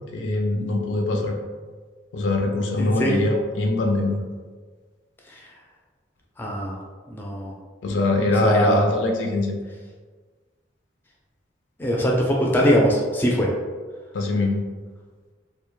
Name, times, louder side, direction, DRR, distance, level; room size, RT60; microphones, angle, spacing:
voice 1, 0.1-1.4 2.1-4.2 7.8-9.6 14.1-14.7, left 2 dB, 85° left, 2 dB, 0.4 m, -23 dB
voice 2, 2.8-3.2 5.3-5.5 6.4-6.7 7.1-7.5 8.4-8.8 11.8-13.5, equal, 10° left, -2 dB, 0.3 m, -21 dB
2.1 x 2.1 x 3.0 m, 1.4 s
head